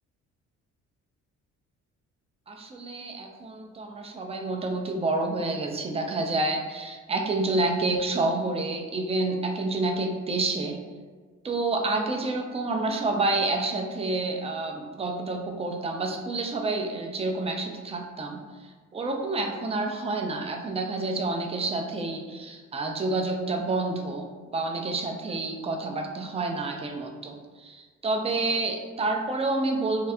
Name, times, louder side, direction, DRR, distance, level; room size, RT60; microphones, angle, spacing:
voice 1, 2.5-10.8 11.4-18.4 18.9-30.1, right 2 dB, 20° right, 2 dB, 0.4 m, -29 dB
2.7 x 2.3 x 3.3 m, 1.4 s
cardioid pair, 90°, 30 cm